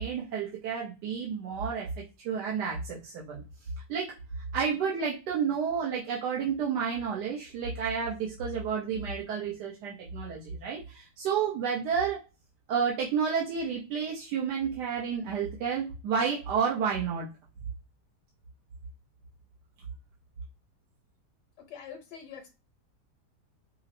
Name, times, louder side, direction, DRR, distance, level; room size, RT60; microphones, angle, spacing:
voice 1, 0.0-1.9 2.2-3.4 3.9-4.1 4.5-12.2 12.7-17.3, right 6 dB, 85° right, -3 dB, 1.4 m, -30 dB
voice 2, 21.7-22.6, left 7 dB, 90° left, 4 dB, 1.4 m, -44 dB
5.5 x 2.0 x 2.5 m, 0.31 s
omnidirectional pair, 1.8 m